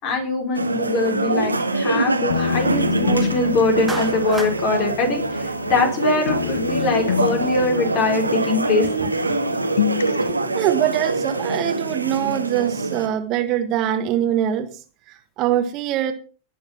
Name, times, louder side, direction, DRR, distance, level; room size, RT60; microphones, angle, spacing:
voice 1, 0.0-8.9, left 3 dB, 40° left, 4 dB, 5.2 m, -22 dB
sound 1, 0.5-13.1, right 3 dB, 80° right, 1.7 m, -24 dB
sound 2, 2.3-6.0 6.3-9.0 9.3-10.3, left 9 dB, 60° left, 0.7 m, -28 dB
voice 2, 3.0-3.4 7.8-7.9 10.5-14.7 15.1-16.1, right 11 dB, 40° right, 8 dB, 1.7 m, -23 dB
Clapping, 3.9-4.6, right 3 dB, 10° right, 1.5 m, -32 dB
18.5 x 7.1 x 5.9 m, 0.38 s
figure-of-eight pair, 90°, 0 cm